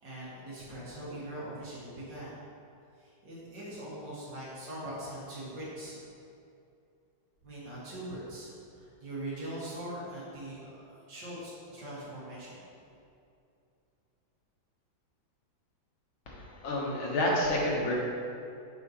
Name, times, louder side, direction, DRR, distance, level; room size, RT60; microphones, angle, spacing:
voice 1, 0.0-2.3 3.0-6.0 7.4-12.6, right 1 dB, 65° right, -8 dB, 2.5 m, -41 dB
voice 2, 16.3-18.0, left 1 dB, 90° left, -3 dB, 2.0 m, -29 dB
7.9 x 5.6 x 3.1 m, 2.5 s
omnidirectional pair, 2.1 m